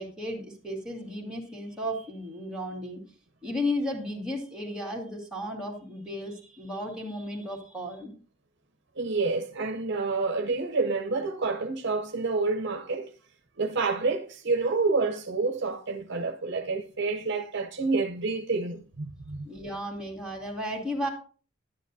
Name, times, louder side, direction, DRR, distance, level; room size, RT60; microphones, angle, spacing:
voice 1, 0.0-3.0 3.4-8.1 19.4-21.1, left 1 dB, 5° right, 2.2 m, -34 dB
voice 2, 9.0-13.1 13.6-19.5, right 3 dB, 60° right, 0.7 m, -28 dB
11.0 x 10.0 x 2.7 m
head